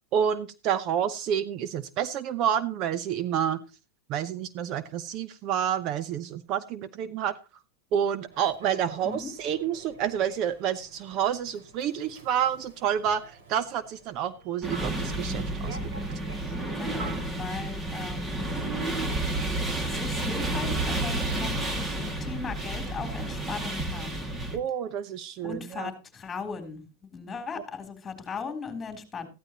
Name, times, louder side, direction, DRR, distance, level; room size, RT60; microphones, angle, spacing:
voice 1, 0.1-3.6 4.1-7.3 7.9-13.2 13.5-16.1 24.5-25.9, right 9 dB, 45° right, 14 dB, 0.8 m, -29 dB
Human voice / Subway metro underground, 8.3-17.7, right 3 dB, 70° right, 5.1 m, -48 dB
sound 1, 14.6-24.6, right 2 dB, 20° right, 2.2 m, -31 dB
voice 2, 16.7-18.5 19.8-24.3 25.4-26.8 27.1-29.3, left 5 dB, 15° left, 5 dB, 3.5 m, -38 dB
15.0 x 12.0 x 3.0 m, 0.30 s
hypercardioid pair, 120°, 0 cm